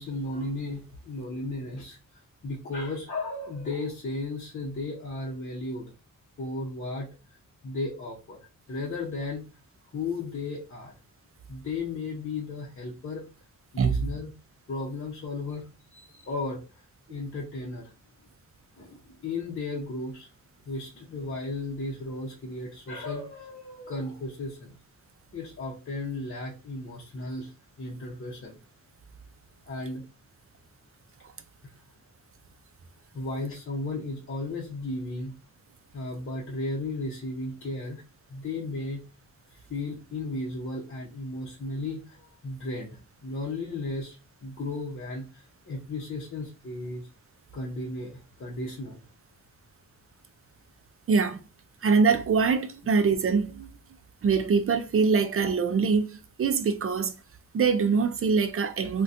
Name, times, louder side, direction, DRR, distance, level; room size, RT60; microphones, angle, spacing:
voice 1, 0.0-2.0 2.4-5.9 6.4-7.1 7.6-9.4 9.9-10.9 11.5-13.2 13.7-14.3 14.7-16.8 17.1-17.9 18.8-20.3 20.7-24.7 25.3-28.6 29.7-30.0 33.1-35.3 35.9-38.0 38.3-39.0 39.5-44.2 44.4-47.1 47.5-49.0, left 2 dB, 40° left, 0.7 m, -35 dB
voice 2, 51.1-51.4 51.8-53.7 54.2-57.1 57.5-59.0, right 5 dB, 45° right, 0.4 m, -24 dB
4.0 x 2.2 x 2.5 m
wide cardioid pair, 105°, 32 cm